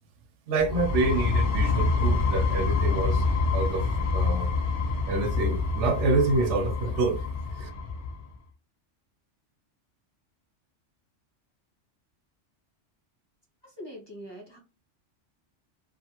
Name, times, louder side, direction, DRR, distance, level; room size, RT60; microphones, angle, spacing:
voice 1, 0.5-3.2 3.5-4.5 5.1-7.2 7.6-7.7, right 3 dB, 75° right, 0.9 m, -27 dB
sound 1, 0.6-8.2, left 3 dB, 70° left, 0.3 m, -26 dB
voice 2, 13.6-14.6, equal, 25° left, 0.9 m, -43 dB
2.5 x 2.4 x 2.8 m
omnidirectional pair, 1.3 m